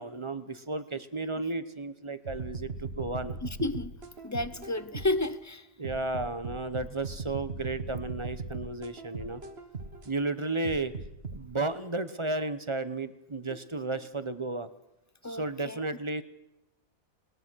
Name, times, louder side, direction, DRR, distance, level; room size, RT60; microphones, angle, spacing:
voice 1, 0.0-3.4 5.8-9.4 10.0-10.9 11.3-14.7 15.2-16.2, right 2 dB, 25° right, 13 dB, 0.9 m, -33 dB
sound 1, 2.3-5.3 5.8-10.1 10.6-11.4, right 4 dB, 50° right, 1.8 m, -39 dB
voice 2, 3.4-3.9 4.2-5.7 15.2-15.8, left 2 dB, 20° left, 14 dB, 0.5 m, -31 dB
20.5 x 20.5 x 6.3 m, 0.90 s
omnidirectional pair, 1.4 m